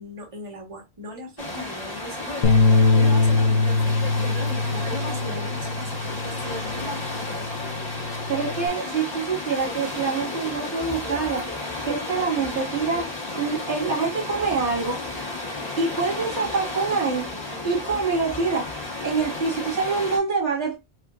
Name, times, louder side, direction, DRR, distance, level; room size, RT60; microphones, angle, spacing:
voice 1, 0.0-7.1, equal, 30° right, 1.4 m, -38 dB
sound 1, 1.4-20.2, left 2 dB, 35° left, 1.7 m, -32 dB
sound 2, 2.4-8.7, left 3 dB, 50° left, 0.8 m, -23 dB
voice 2, 8.3-11.5 11.8-15.1 15.8-17.3 17.6-18.7 19.0-20.8, right 4 dB, 80° right, 2.2 m, -25 dB
5.0 x 2.6 x 2.4 m
omnidirectional pair, 1.1 m